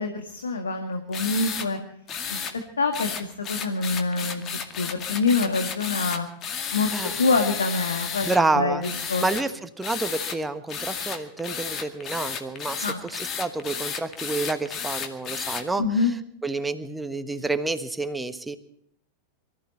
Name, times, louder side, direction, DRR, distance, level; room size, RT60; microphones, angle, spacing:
voice 1, 0.0-1.8 2.3-2.4 2.8-4.5 4.8-6.3 6.7-8.3 8.5-9.3 12.8-13.0 15.8-16.1, left 3 dB, 70° left, 5 dB, 1.7 m, -25 dB
sound 1, 1.1-1.7 2.1-2.5 2.9-8.4 8.8-9.4 9.8-10.4 10.7-15.6, left 7 dB, 30° left, 2.1 m, -32 dB
voice 2, 8.3-8.8 9.2-15.8 16.4-18.6, right 3 dB, 10° right, 10 dB, 1.3 m, -28 dB
24.0 x 14.5 x 4.2 m, 0.68 s
figure-of-eight pair, 90°, 0 cm